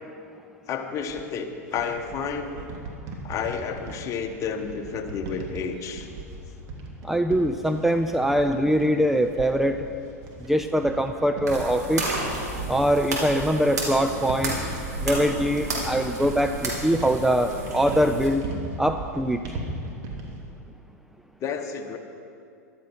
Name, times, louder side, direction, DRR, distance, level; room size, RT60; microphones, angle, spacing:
voice 1, 0.7-2.5 3.2-6.1 21.4-22.0, left 6 dB, 35° left, 5 dB, 1.5 m, -31 dB
sound 1, 1.3-20.4, right 2 dB, 50° right, 3.0 m, -38 dB
voice 2, 7.0-9.8 10.5-12.1 12.7-14.6 15.0-18.5 18.8-19.4, equal, 5° right, 7 dB, 0.5 m, -23 dB
sound 2, 11.5-18.3, right 2 dB, 90° right, 3.6 m, -32 dB
15.0 x 12.0 x 5.8 m, 2.5 s
hypercardioid pair, 100°, 9 cm